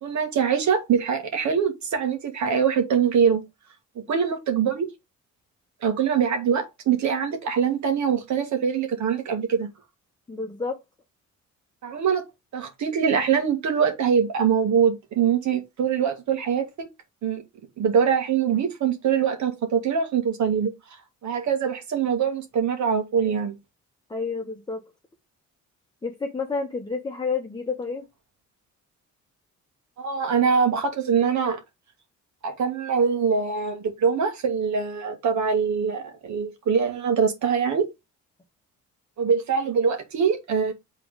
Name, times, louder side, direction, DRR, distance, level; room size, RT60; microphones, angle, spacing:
voice 1, 0.0-3.4 4.1-4.9 5.8-9.7 11.8-12.3 12.5-16.9 17.2-17.4 17.8-20.7 21.2-23.6 30.0-31.6 32.4-37.9 39.2-40.7, right 7 dB, 70° right, 1.9 m, -23 dB
voice 2, 10.3-10.8 24.1-24.8 26.0-28.1, left 4 dB, 15° left, 1.0 m, -29 dB
6.0 x 3.8 x 4.9 m
cardioid pair, 90°, 30 cm